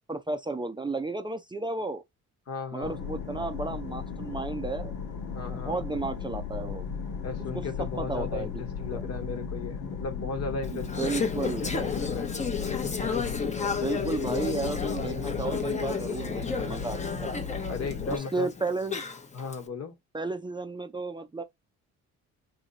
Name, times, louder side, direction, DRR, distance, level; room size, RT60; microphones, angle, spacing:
voice 1, 0.1-2.0 2.7-5.0 5.5-6.9 7.5-8.6 8.9-9.0 10.7-11.7 13.8-17.3 18.1-19.0 20.1-21.4, right 3 dB, 15° right, 0.5 m, -33 dB
voice 2, 2.5-3.0 5.3-5.8 7.2-12.4 17.7-18.5 19.3-20.0, left 4 dB, 55° left, 1.1 m, -36 dB
sound 1, 2.8-18.2, left 6 dB, 85° left, 1.4 m, -36 dB
Conversation / Chatter, 10.6-19.6, left 5 dB, 25° left, 0.8 m, -32 dB
3.0 x 2.8 x 3.8 m
cardioid pair, 90°, 30 cm